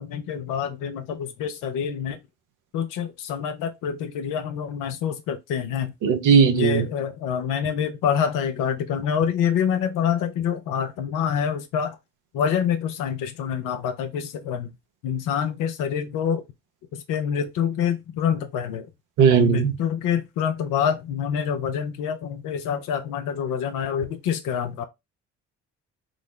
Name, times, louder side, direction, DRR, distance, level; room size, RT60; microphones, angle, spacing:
voice 1, 0.0-2.2 2.7-5.9 6.5-12.0 12.3-14.7 15.0-16.4 16.9-18.9 19.3-24.8, left 8 dB, 70° left, 0.5 m, -26 dB
voice 2, 6.0-6.8 19.2-19.7, right 7 dB, 65° right, 0.7 m, -17 dB
3.8 x 2.0 x 3.1 m
hypercardioid pair, 45°, 33 cm